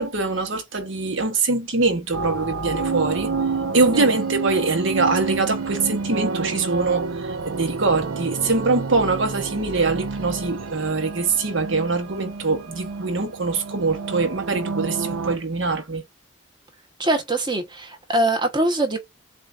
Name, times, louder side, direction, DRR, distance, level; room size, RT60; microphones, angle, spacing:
voice 1, 0.0-3.3 3.7-16.0, right 3 dB, 65° right, 1.1 m, -23 dB
sound 1, 2.1-15.4, right 4 dB, 85° right, 0.6 m, -29 dB
voice 2, 17.0-19.0, right 2 dB, 20° right, 1.1 m, -23 dB
7.3 x 2.5 x 2.5 m
head